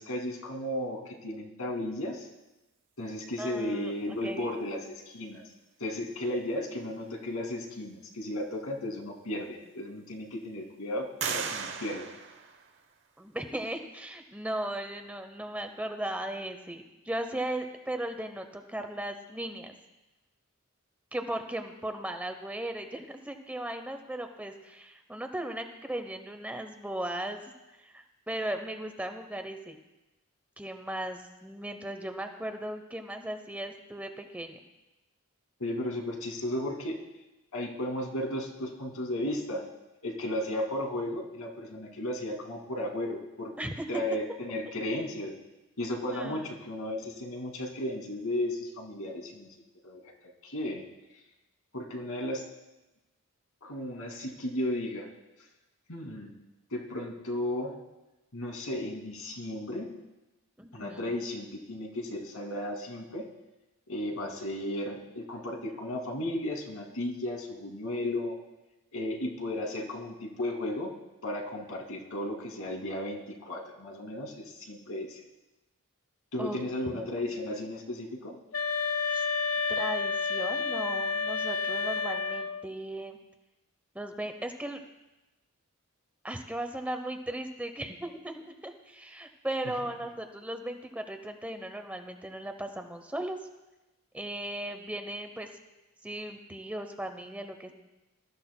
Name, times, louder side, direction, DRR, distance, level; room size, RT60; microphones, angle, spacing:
voice 1, 0.0-2.3 3.0-5.4 5.8-12.1 35.6-37.0 37.5-39.7 40.0-43.5 43.9-45.4 45.8-49.5 49.8-50.1 50.4-50.8 51.7-52.4 53.6-55.1 55.9-56.3 56.7-57.8 58.3-59.9 60.7-63.3 63.9-68.4 68.9-70.9 71.2-75.2 76.3-78.4, left 1 dB, 80° left, 1 dB, 2.3 m, -34 dB
voice 2, 3.4-4.5 13.2-19.7 21.1-27.4 27.8-29.8 30.6-34.6 43.6-43.9 46.1-46.5 60.6-61.1 76.4-76.6 76.9-77.1 79.1-79.2 79.7-83.2 83.9-84.8 86.2-93.4 94.1-95.5 96.0-97.7, right 1 dB, 5° right, 6 dB, 0.7 m, -37 dB
sound 1, 8.9-9.0 9.6-10.3 11.2-13.1, right 6 dB, 55° right, 1.0 m, -37 dB
sound 2, 78.5-82.7, left 4 dB, 65° left, 0.5 m, -30 dB
22.5 x 13.5 x 2.2 m, 1.0 s
head